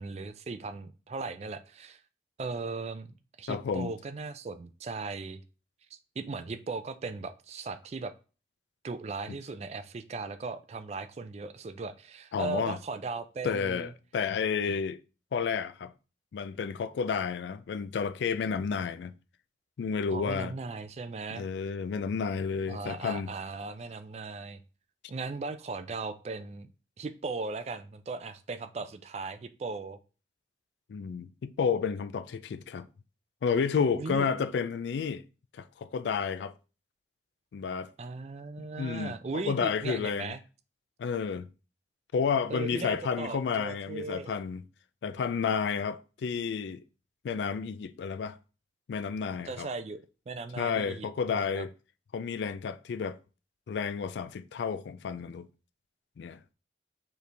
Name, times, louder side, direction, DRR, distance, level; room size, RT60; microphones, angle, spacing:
voice 1, 0.0-2.0 2.4-3.1 3.4-5.4 6.2-8.1 8.8-13.9 20.1-21.5 22.7-24.6 25.1-26.7 27.0-30.0 33.9-34.3 38.0-40.4 42.5-44.4 49.5-51.7, right 3 dB, 35° right, 0.3 m, -38 dB
voice 2, 3.5-3.9 12.3-12.8 13.4-15.0 15.3-15.9 16.3-19.1 19.8-20.5 21.3-23.3 30.9-32.9 33.4-35.2 35.5-36.5 37.5-37.9 38.6-40.3 41.0-41.5 42.1-44.6 45.0-46.8 47.2-48.4 48.9-49.7 50.6-51.7 52.1-53.2 53.7-55.5 56.2-56.4, left 6 dB, 80° left, 0.3 m, -31 dB
4.7 x 3.2 x 3.3 m
head